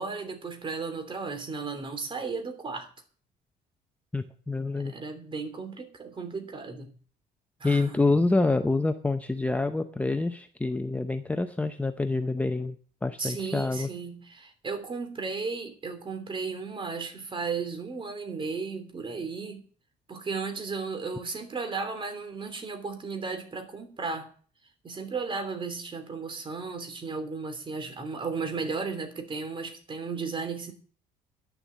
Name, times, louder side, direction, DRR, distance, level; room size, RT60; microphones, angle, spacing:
voice 1, 0.0-2.9 4.8-6.9 7.6-8.0 13.2-19.6 20.1-24.3 24.8-30.7, right 4 dB, 30° right, 7 dB, 3.1 m, -35 dB
voice 2, 4.1-4.9 7.6-13.9, left 3 dB, 10° left, 8 dB, 0.7 m, -27 dB
10.5 x 7.2 x 8.3 m, 0.44 s
cardioid pair, 110°, 17 cm